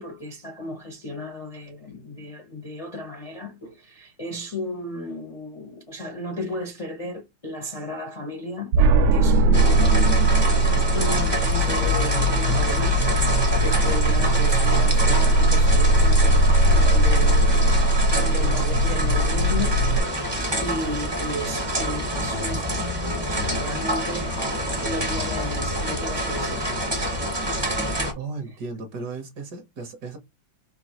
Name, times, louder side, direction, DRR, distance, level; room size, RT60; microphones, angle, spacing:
voice 1, 0.0-8.7 9.1-10.3 10.9-13.0 13.4-24.4 24.8-26.8, left 1 dB, 45° left, 0.4 m, -34 dB
sound 1, 8.7-20.0, right 1 dB, 80° right, 1.4 m, -19 dB
sound 2, 9.5-28.1, right 1 dB, 25° right, 0.6 m, -27 dB
voice 2, 28.1-30.2, right 4 dB, 60° right, 1.4 m, -35 dB
5.2 x 2.6 x 2.8 m
omnidirectional pair, 2.2 m